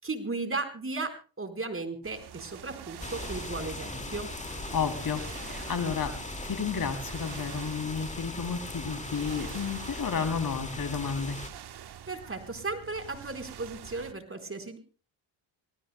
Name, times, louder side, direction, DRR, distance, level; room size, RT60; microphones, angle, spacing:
voice 1, 0.0-4.3 12.1-14.8, right 3 dB, 25° right, 7 dB, 4.3 m, -35 dB
sound 1, 2.0-14.1, right 10 dB, 55° right, 1.2 m, -47 dB
sound 2, 3.0-11.5, left 2 dB, 15° left, 2.2 m, -39 dB
voice 2, 4.7-11.4, left 6 dB, 45° left, 7 dB, 3.1 m, -32 dB
28.0 x 19.0 x 2.2 m, 0.36 s
cardioid pair, 75°, 48 cm